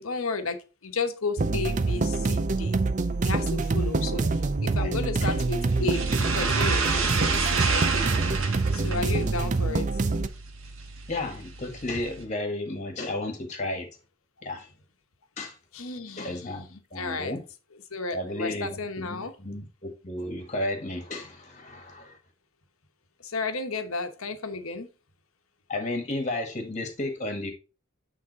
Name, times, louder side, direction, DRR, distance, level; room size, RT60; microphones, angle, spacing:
voice 1, 0.0-2.8 3.2-8.1 8.7-10.0 15.7-17.3 17.9-19.3 23.2-24.9, left 3 dB, 75° left, 1.1 m, -33 dB
sound 1, 1.4-10.3, right 3 dB, 35° right, 0.5 m, -26 dB
sound 2, 5.2-12.2, right 5 dB, 65° right, 1.5 m, -30 dB
voice 2, 11.1-13.9 14.4-14.7 15.4-15.5 16.2-16.7 16.9-17.4 18.1-22.2 25.7-27.5, left 2 dB, 35° left, 1.7 m, -33 dB
8.8 x 3.7 x 4.1 m
head